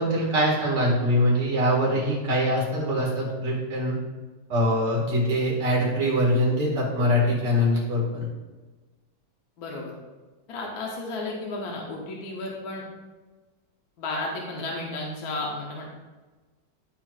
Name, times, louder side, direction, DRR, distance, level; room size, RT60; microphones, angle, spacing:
voice 1, 0.0-4.0 4.5-8.3, equal, 70° right, -5 dB, 2.6 m, -23 dB
voice 2, 9.6-10.0 10.5-12.8 14.0-16.0, left 2 dB, 60° left, -2 dB, 1.4 m, -33 dB
12.0 x 4.5 x 2.4 m, 1.3 s
omnidirectional pair, 1.9 m